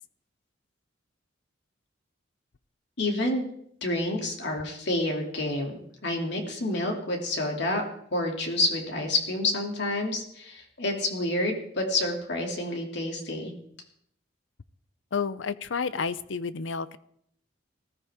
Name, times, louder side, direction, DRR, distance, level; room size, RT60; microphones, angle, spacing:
voice 1, 3.0-3.4 3.8-5.8 6.0-7.8 8.1-13.5, left 2 dB, 65° left, 2 dB, 2.8 m, -28 dB
voice 2, 15.1-17.0, left 5 dB, 80° left, 16 dB, 0.6 m, -30 dB
19.0 x 14.0 x 3.7 m, 0.69 s
head